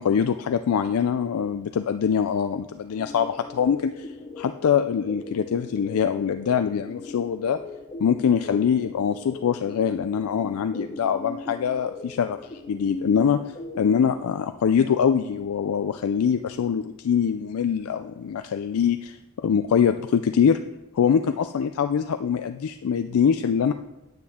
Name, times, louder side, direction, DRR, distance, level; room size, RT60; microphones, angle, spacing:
voice 1, 0.0-7.6 8.0-13.4 13.8-20.6 20.9-23.7, left 7 dB, 75° left, 8 dB, 0.4 m, -23 dB
sound 1, 3.0-14.2, left 2 dB, 30° left, 0.7 m, -39 dB
9.3 x 9.1 x 3.6 m, 0.96 s
head